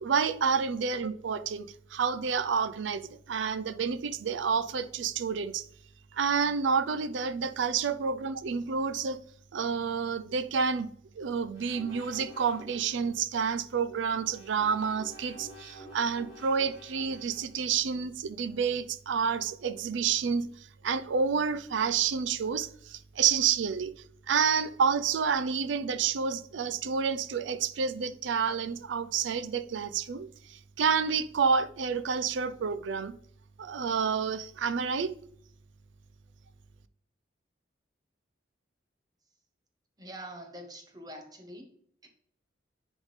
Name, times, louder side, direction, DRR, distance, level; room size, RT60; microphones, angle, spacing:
voice 1, 0.0-5.6 6.1-9.2 9.5-10.9 11.2-20.5 20.8-23.9 24.3-33.2 33.6-35.1, right 6 dB, 70° right, 0.4 m, -29 dB
sound 1, 11.5-13.2 13.9-17.6, equal, 35° left, 2.8 m, -50 dB
voice 2, 40.0-41.7 42.0-42.1, right 1 dB, 20° right, 0.9 m, -45 dB
10.5 x 3.6 x 3.2 m
head